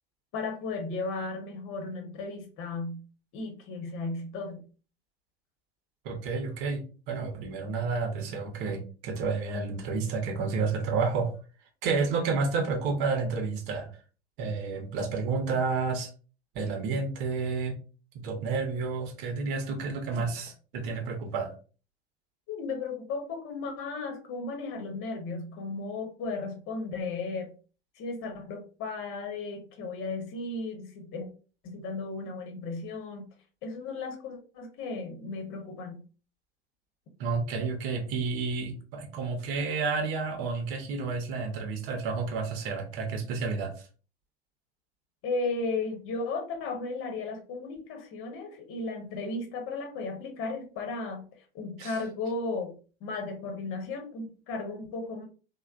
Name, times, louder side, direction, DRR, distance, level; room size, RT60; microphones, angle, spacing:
voice 1, 0.3-3.0 3.3-4.6 22.5-27.5 28.0-31.3 31.6-33.3 33.6-36.0 45.2-51.3 51.5-52.8 53.0-55.2, left 3 dB, 45° left, 3 dB, 1.0 m, -35 dB
voice 2, 6.0-11.3 11.8-13.9 14.4-16.1 16.5-17.8 18.2-21.5 37.2-43.7 51.8-52.0, right 4 dB, 60° right, 5 dB, 0.9 m, -30 dB
3.2 x 2.2 x 2.4 m, 0.36 s
hypercardioid pair, 80°, 30 cm